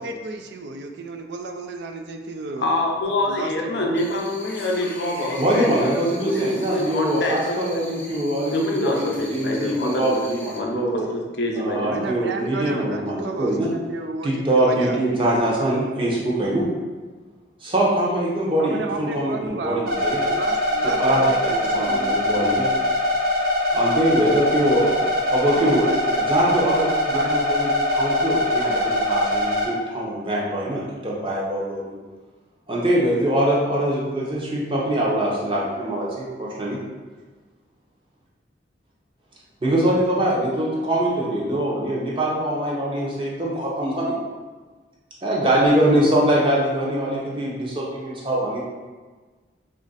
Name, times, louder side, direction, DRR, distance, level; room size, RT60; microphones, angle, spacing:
voice 1, 0.0-2.6 3.0-3.9 11.8-15.3 18.6-22.5 25.5-26.3 27.1-27.3, right 3 dB, 75° right, 5 dB, 0.3 m, -32 dB
voice 2, 2.6-7.7 8.0-8.2 8.5-10.3 10.5-11.9, left 1 dB, 80° left, 0 dB, 0.5 m, -26 dB
sound 1, 3.9-10.6, left 1 dB, 10° left, 0.3 m, -41 dB
voice 3, 5.4-11.1 11.5-13.7 14.2-16.7 17.6-20.2 20.8-22.7 23.7-25.9 26.3-31.8 32.7-36.8 39.6-44.2 45.2-48.6, right 1 dB, 30° right, -4 dB, 0.7 m, -23 dB
sound 2, 19.9-29.6, left 1 dB, 60° right, 0.9 m, -22 dB
3.1 x 2.4 x 3.9 m, 1.4 s
head